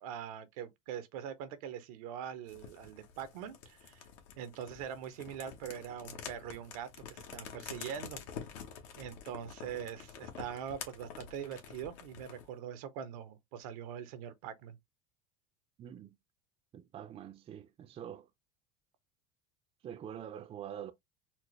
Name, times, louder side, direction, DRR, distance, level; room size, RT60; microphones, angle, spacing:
voice 1, 0.0-4.1 4.4-8.2 9.0-14.8, right 9 dB, 80° right, 0.7 m, -43 dB
sound 1, 2.5-12.5, left 7 dB, 75° left, 1.1 m, -48 dB
voice 2, 15.8-16.1 16.7-18.3 19.8-20.9, right 9 dB, 35° right, 0.5 m, -45 dB
4.3 x 2.0 x 3.1 m
supercardioid pair, 105°, 18 cm